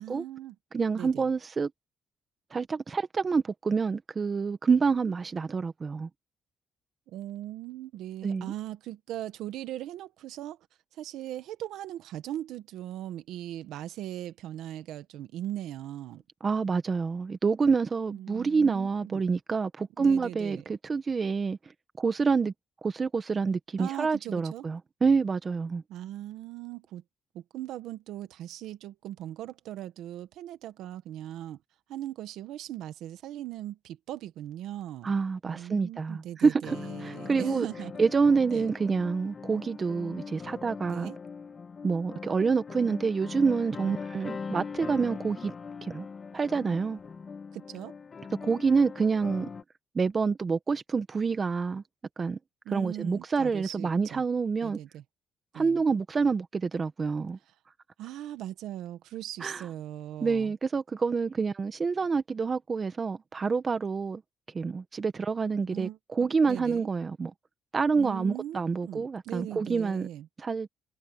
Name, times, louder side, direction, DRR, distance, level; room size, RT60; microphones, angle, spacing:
voice 1, 0.0-0.5 0.9-1.2 7.1-10.6 10.9-16.2 18.1-19.2 20.0-20.6 23.8-24.6 25.9-27.0 27.3-31.6 31.9-35.1 35.4-37.9 38.5-38.7 40.9-41.2 47.5-47.9 52.6-54.2 54.6-55.0 55.5-55.8 58.0-60.5 65.7-66.0 66.5-66.9 67.9-70.3, right 13 dB, 85° right, 1.4 m, -39 dB
voice 2, 0.7-1.7 2.5-6.1 8.2-8.5 16.4-21.6 22.0-22.5 22.8-25.8 35.0-37.7 38.0-41.1 41.8-45.5 45.8-46.1 46.3-47.0 48.4-49.5 49.9-51.8 52.2-52.4 52.7-54.8 55.5-57.4 59.4-59.6 60.2-64.2 64.5-67.3 67.7-70.1 70.4-70.7, right 5 dB, 35° right, 1.4 m, -27 dB
sound 1, 36.6-49.6, left 5 dB, 40° left, 2.0 m, -41 dB
cardioid pair, 90°, 0 cm